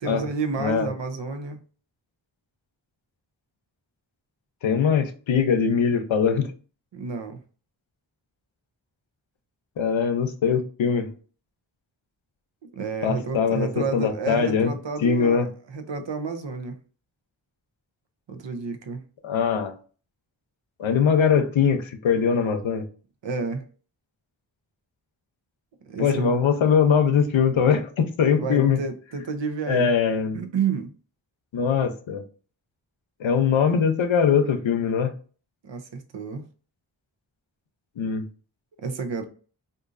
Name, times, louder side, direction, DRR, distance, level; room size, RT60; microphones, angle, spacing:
voice 1, 0.0-1.6 6.9-7.4 12.7-16.8 18.3-19.0 23.2-23.6 25.8-26.4 28.4-29.9 30.3-30.9 35.6-36.5 38.8-39.2, right 5 dB, 70° right, 0.7 m, -30 dB
voice 2, 0.6-0.9 4.6-6.5 9.8-11.1 13.0-14.7 15.0-15.5 19.2-19.7 20.8-22.8 26.0-28.8 29.7-30.4 31.5-32.2 33.2-35.1 38.0-38.2, left 6 dB, 80° left, 0.7 m, -22 dB
3.8 x 2.6 x 2.5 m
cardioid pair, 45°, 46 cm